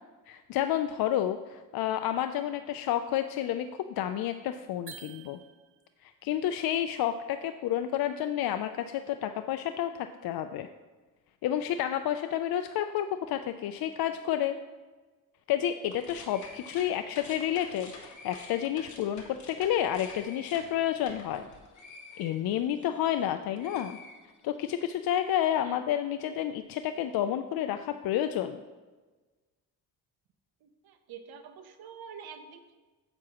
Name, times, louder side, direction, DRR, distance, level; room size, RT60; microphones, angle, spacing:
voice 1, 0.3-5.4 6.0-10.7 11.4-14.6 15.5-21.5 22.2-24.0 24.4-28.6, left 11 dB, 70° left, 8 dB, 0.5 m, -30 dB
sound 1, 4.9-6.0, right 9 dB, 35° right, 0.5 m, -48 dB
sound 2, 15.8-23.3 23.6-24.7, left 3 dB, 50° left, 1.4 m, -48 dB
voice 2, 30.6-32.7, right 6 dB, 75° right, 8 dB, 0.9 m, -47 dB
9.7 x 7.1 x 2.9 m, 1.3 s
cardioid pair, 105°, 37 cm